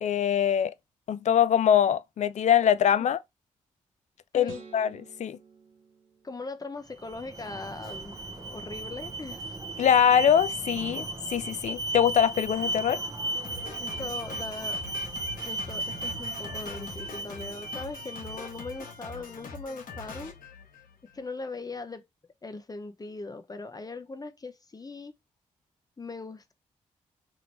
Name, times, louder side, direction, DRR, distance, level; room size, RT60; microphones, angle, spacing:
voice 1, 0.0-0.7 1.1-3.2 4.3-4.9 5.2-5.4 9.8-13.0, left 9 dB, 55° left, 0.4 m, -23 dB
voice 2, 4.3-4.6 6.2-9.6 13.8-14.8 15.4-20.3 21.1-22.0 22.4-25.2 26.0-26.5, left 3 dB, 25° left, 0.7 m, -40 dB
sound 1, 4.4-6.8, right 6 dB, 80° right, 1.0 m, -50 dB
Alarm, 6.9-18.9, right 2 dB, 25° right, 0.8 m, -36 dB
Drum kit, 13.4-21.2, left 4 dB, 70° left, 0.9 m, -43 dB
2.9 x 2.6 x 3.1 m
hypercardioid pair, 40°, 14 cm